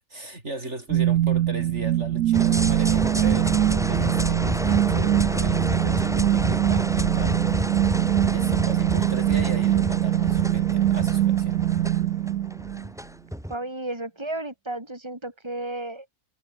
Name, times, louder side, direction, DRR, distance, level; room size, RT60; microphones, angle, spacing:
voice 1, 0.1-7.4 7.7-8.0 8.2-11.6, right 2 dB, 50° right, 5.5 m, -37 dB
sound 1, 0.9-12.9, right 13 dB, 80° right, 1.1 m, -23 dB
sound 2, 2.3-13.5, equal, ahead, 4.0 m, -29 dB
voice 2, 13.5-16.1, right 2 dB, 20° right, 5.1 m, -33 dB
omnidirectional pair, 1.5 m